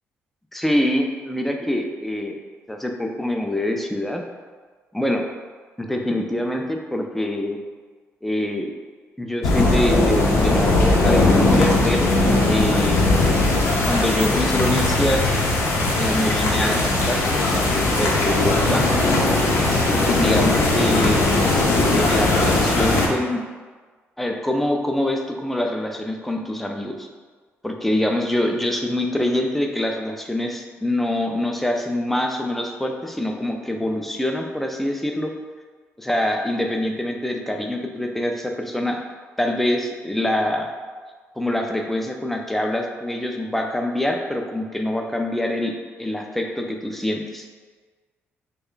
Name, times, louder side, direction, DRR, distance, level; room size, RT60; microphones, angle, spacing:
voice 1, 0.5-2.4 2.7-4.2 4.9-5.3 5.8-7.6 8.2-8.7 9.2-12.1 12.5-13.1 13.8-15.3 16.0-17.2 17.5-18.9 20.0-21.3 21.9-23.4 24.2-27.1 27.6-35.3 36.0-39.0 39.4-40.7 41.4-47.5, left 1 dB, 5° left, 3 dB, 0.3 m, -25 dB
sound 1, 9.4-23.1, left 2 dB, 65° left, 0.6 m, -19 dB
3.2 x 2.2 x 3.7 m, 1.5 s
cardioid pair, 105°, 5 cm